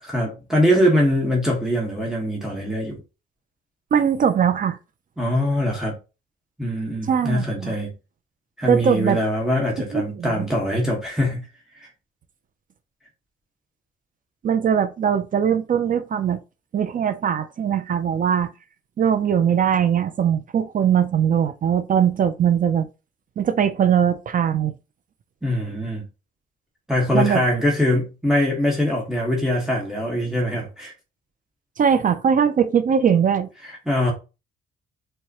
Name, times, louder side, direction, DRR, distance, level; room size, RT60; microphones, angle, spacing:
voice 1, 0.0-3.0 5.2-6.0 6.6-7.9 8.6-11.4 11.8-11.9 25.4-26.0 26.9-30.9 33.6-34.1, equal, ahead, 1.3 m, -22 dB
voice 2, 3.9-4.8 7.1-7.8 8.7-9.2 9.9-10.4 14.4-16.4 16.7-18.5 19.0-22.9 23.4-24.7 27.1-27.4 31.8-33.5, right 8 dB, 45° right, 0.4 m, -20 dB
4.6 x 2.2 x 2.9 m
cardioid pair, 90°, 20 cm